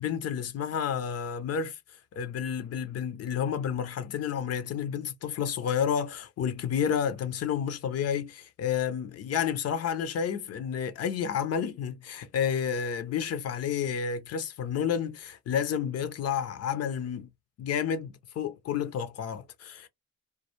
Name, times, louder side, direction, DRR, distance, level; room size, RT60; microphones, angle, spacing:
voice 1, 0.0-1.8 2.1-17.3 17.6-19.9, left 8 dB, 55° left, 0.6 m, -30 dB
2.3 x 2.2 x 2.7 m
hypercardioid pair, 45°, 30 cm